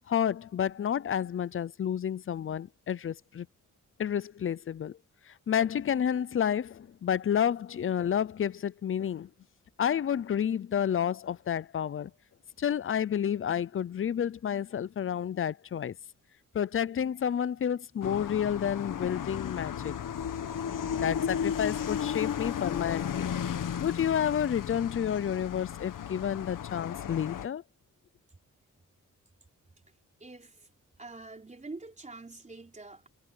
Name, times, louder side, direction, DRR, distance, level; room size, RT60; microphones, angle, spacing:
voice 1, 0.1-3.5 4.0-5.0 5.3-9.3 9.8-12.1 12.6-16.0 16.5-19.9 20.9-23.3 23.8-27.6, left 9 dB, 40° left, 0.6 m, -30 dB
sound 1, 18.0-27.5, left 8 dB, 85° left, 1.7 m, -34 dB
voice 2, 30.2-30.7 31.0-33.1, right 3 dB, 20° right, 3.9 m, -45 dB
wide cardioid pair, 115°, 32 cm